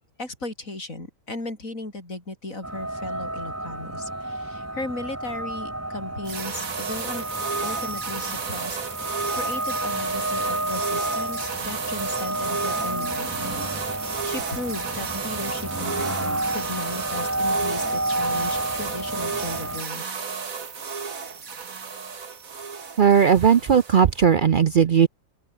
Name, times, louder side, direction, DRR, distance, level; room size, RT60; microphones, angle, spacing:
voice 1, 0.2-7.2 7.6-8.8 9.1-13.7 14.0-20.2, left 2 dB, 75° left, 6.2 m, -36 dB
tornado warning nappanee IN, 2.6-19.8, right 1 dB, 10° right, 1.7 m, -30 dB
sound 1, 6.3-24.2, right 5 dB, 85° right, 2.4 m, -33 dB
voice 2, 23.0-25.1, right 7 dB, 50° right, 0.6 m, -17 dB
open air
omnidirectional pair, 1.4 m